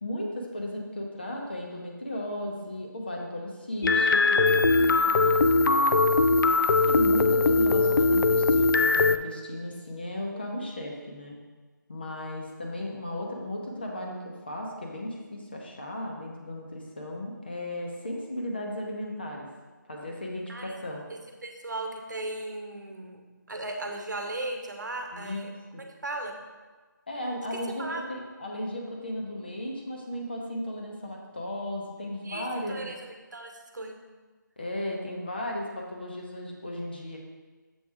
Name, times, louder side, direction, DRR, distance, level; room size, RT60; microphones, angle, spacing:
voice 1, 0.0-6.1 6.8-11.4 11.9-19.5 19.9-21.0 25.1-25.4 25.7-25.8 27.1-32.9 34.6-37.2, left 1 dB, 30° left, 0 dB, 0.8 m, -35 dB
sound 1, 3.8-9.2, left 3 dB, 80° left, 0.4 m, -21 dB
voice 2, 21.1-23.2 23.5-25.5 26.0-26.4 27.5-28.0 32.2-34.0, right 2 dB, 60° right, 3 dB, 1.0 m, -37 dB
7.1 x 4.1 x 4.7 m, 1.3 s
figure-of-eight pair, 180°, 11 cm